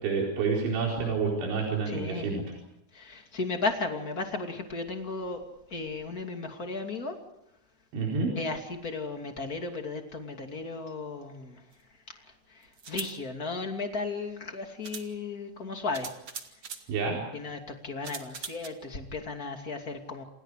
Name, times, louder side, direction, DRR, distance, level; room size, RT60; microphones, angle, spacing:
voice 1, 0.0-2.4 7.9-8.4 16.9-17.2, right 4 dB, 90° right, -1 dB, 6.8 m, -28 dB
voice 2, 1.9-2.3 2.9-5.4 5.7-7.2 8.4-11.6 12.1-16.1 17.3-20.2, left 3 dB, 25° left, 4 dB, 2.1 m, -35 dB
sound 1, 11.7-11.8 12.7-13.1 14.3-14.4 14.8-15.1 15.9-16.9 18.0-18.7, right 6 dB, 45° right, 1.7 m, -40 dB
28.5 x 28.0 x 5.0 m, 0.83 s
omnidirectional pair, 5.2 m